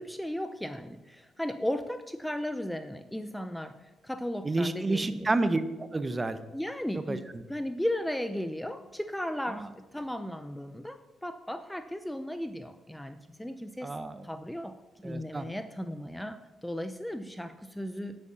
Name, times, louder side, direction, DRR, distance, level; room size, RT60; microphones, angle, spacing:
voice 1, 0.0-5.3 6.5-14.0 14.2-18.2, left 1 dB, 5° left, 10 dB, 0.6 m, -36 dB
voice 2, 4.4-6.4 7.1-7.2 9.5-9.6 13.8-14.2 15.0-15.5, right 2 dB, 20° right, 12 dB, 0.8 m, -29 dB
9.9 x 8.4 x 5.7 m, 1.1 s
cardioid pair, 90°, 0 cm